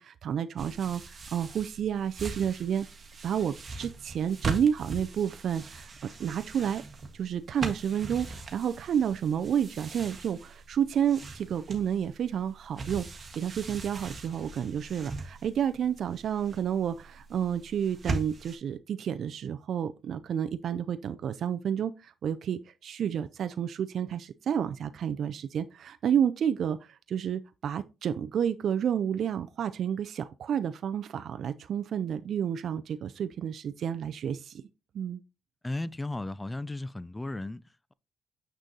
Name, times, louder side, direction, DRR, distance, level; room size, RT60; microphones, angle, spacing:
voice 1, 0.0-2.9 3.2-6.8 7.1-13.1 13.4-34.6 34.9-35.2, right 8 dB, 65° right, 0.3 m, -30 dB
sound 1, 0.6-18.6, right 3 dB, 40° right, 1.4 m, -40 dB
voice 2, 35.6-37.6, left 2 dB, 15° left, 0.3 m, -35 dB
6.7 x 6.1 x 2.8 m
cardioid pair, 90°, 0 cm